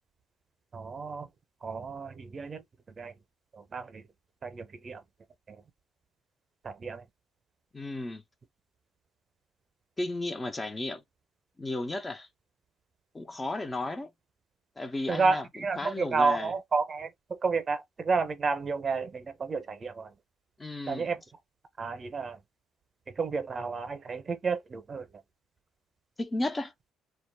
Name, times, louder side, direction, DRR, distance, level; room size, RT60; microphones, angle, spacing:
voice 1, 0.7-1.3 1.6-2.6 3.0-3.1 3.5-4.1 4.4-5.0 5.5-5.6 6.6-7.0 15.1-20.1 20.9-21.2 21.8-22.4 23.1-25.1, right 4 dB, 40° right, 0.7 m, -31 dB
voice 2, 7.7-8.2 10.0-11.0 11.6-12.3 13.1-14.1 14.8-15.4 15.8-16.5 20.6-21.1 26.2-26.7, left 2 dB, 25° left, 0.5 m, -33 dB
2.3 x 2.0 x 3.3 m
hypercardioid pair, 55°, 0 cm